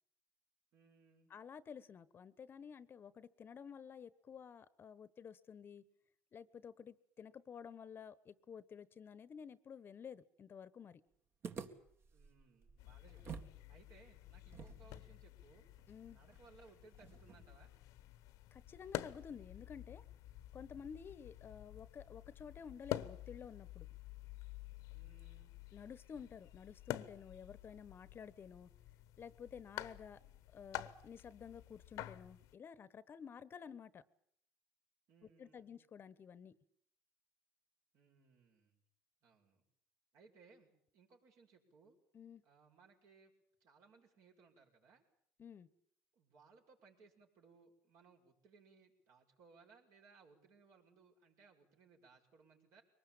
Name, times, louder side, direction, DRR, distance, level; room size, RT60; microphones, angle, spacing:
voice 1, 0.7-1.3 12.1-15.7 16.1-17.7 24.9-25.5 35.1-35.8 37.9-38.8 39.2-39.6 40.1-42.0 42.4-43.3 43.6-45.1 46.2-52.8, right 4 dB, 65° right, 5.7 m, -65 dB
voice 2, 1.3-5.8 6.3-11.0 15.9-16.2 18.5-20.0 20.5-23.9 25.7-28.7 29.2-30.2 30.5-34.0 35.4-36.5 42.1-42.4 45.4-45.7, left 7 dB, 40° left, 1.1 m, -52 dB
sound 1, 11.4-13.6 13.8-13.9 14.5-17.6, right 6 dB, 45° right, 2.0 m, -52 dB
sound 2, 12.8-32.5, left 14 dB, 75° left, 1.1 m, -49 dB
23.0 x 19.5 x 8.8 m
supercardioid pair, 100°, 6 cm